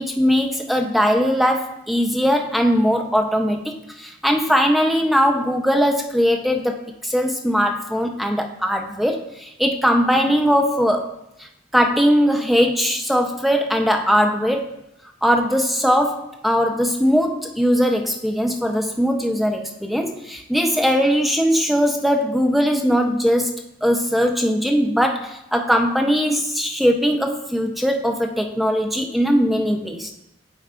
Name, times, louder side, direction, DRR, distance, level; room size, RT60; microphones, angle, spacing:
voice 1, 0.0-11.1 11.4-14.7 15.2-30.1, equal, ahead, 3 dB, 0.4 m, -20 dB
8.9 x 3.4 x 3.6 m, 0.83 s
head